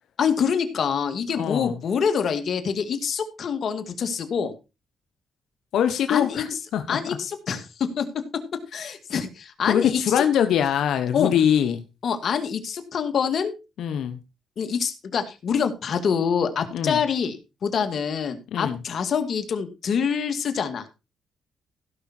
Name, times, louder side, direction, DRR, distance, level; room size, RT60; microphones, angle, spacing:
voice 1, 0.2-4.5 6.1-6.4 6.9-8.1 8.7-10.2 11.1-11.3 12.0-13.5 14.6-17.4 17.6-20.8, left 7 dB, 60° left, 8 dB, 2.2 m, -26 dB
voice 2, 1.3-1.8 5.7-7.2 9.6-11.8 13.8-14.2 16.7-17.0 18.5-18.8, left 9 dB, 80° left, 8 dB, 1.2 m, -23 dB
16.5 x 5.9 x 4.3 m, 0.28 s
cardioid pair, 85°, 0 cm